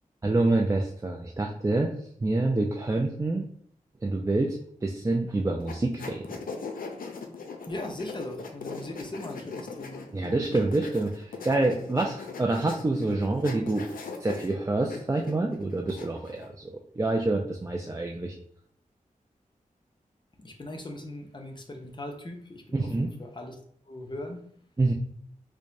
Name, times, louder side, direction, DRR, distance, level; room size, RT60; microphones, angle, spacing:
voice 1, 0.2-3.4 4.0-4.6 4.8-6.3 10.1-13.9 14.2-18.3 22.7-23.1 24.8-24.9, right 2 dB, 20° right, 0 dB, 0.4 m, -27 dB
sound 1, 5.7-16.5, left 4 dB, 85° left, 0.5 m, -40 dB
voice 2, 7.7-10.0 20.4-23.6 23.9-24.4, left 1 dB, 35° left, 3 dB, 0.7 m, -39 dB
4.7 x 2.1 x 2.6 m, 0.62 s
cardioid pair, 65°, 14 cm